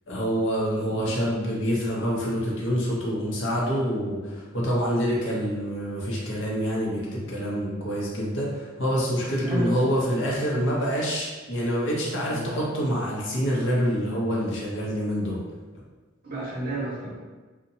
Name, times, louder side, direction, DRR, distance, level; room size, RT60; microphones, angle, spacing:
voice 1, 0.1-15.4, equal, 75° left, -4 dB, 0.7 m, -26 dB
voice 2, 4.0-4.4 9.4-10.0 12.3-12.5 16.2-17.1, right 1 dB, 50° right, -8 dB, 1.1 m, -32 dB
2.7 x 2.1 x 2.6 m, 1.3 s
head